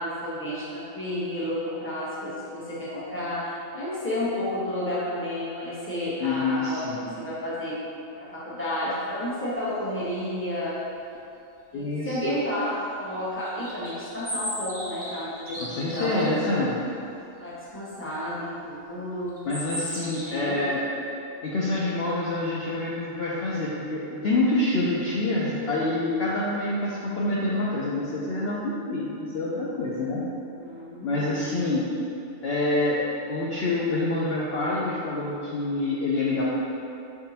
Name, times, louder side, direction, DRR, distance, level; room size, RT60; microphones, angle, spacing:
voice 1, 0.0-6.8 7.2-7.8 8.2-10.8 11.7-16.6 17.4-19.3 20.2-20.6 30.6-31.4, left 1 dB, 10° left, -10 dB, 1.0 m, -31 dB
voice 2, 6.2-7.0 11.7-12.3 15.6-16.8 19.5-20.9 21.4-30.2 31.0-31.9 32.4-36.5, left 2 dB, 60° left, -6 dB, 0.7 m, -27 dB
sound 1, 13.4-16.3 19.3-20.3, equal, 5° right, 1.2 m, -35 dB
5.4 x 3.6 x 2.8 m, 2.6 s
omnidirectional pair, 1.3 m